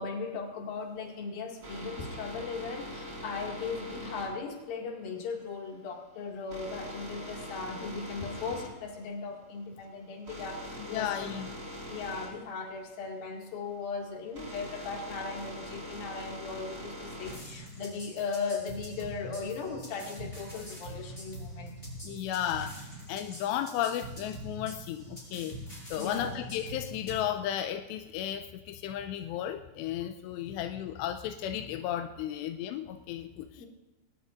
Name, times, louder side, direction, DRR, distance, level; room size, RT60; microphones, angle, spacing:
voice 1, 0.0-11.4 11.9-21.7 25.9-26.4 33.6-33.7, left 4 dB, 60° left, 0 dB, 3.8 m, -38 dB
sound 1, 1.0-17.6, equal, 20° right, 5.1 m, -43 dB
voice 2, 10.8-11.5 22.0-25.6 25.9-33.7, left 11 dB, 90° left, 7 dB, 2.8 m, -34 dB
sound 2, 17.2-27.2, equal, 15° left, 6.3 m, -44 dB
20.5 x 19.0 x 2.6 m, 1.1 s
omnidirectional pair, 4.9 m